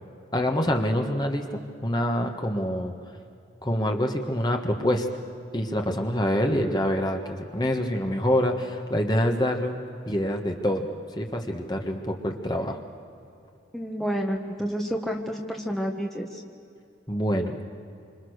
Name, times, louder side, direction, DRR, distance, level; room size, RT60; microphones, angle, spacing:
voice 1, 0.3-2.9 3.6-5.2 5.5-9.8 10.1-12.8 17.1-17.7, equal, 20° left, 4 dB, 1.5 m, -26 dB
voice 2, 13.7-16.4, equal, ahead, 0 dB, 1.4 m, -29 dB
28.0 x 26.0 x 6.6 m, 2.5 s
head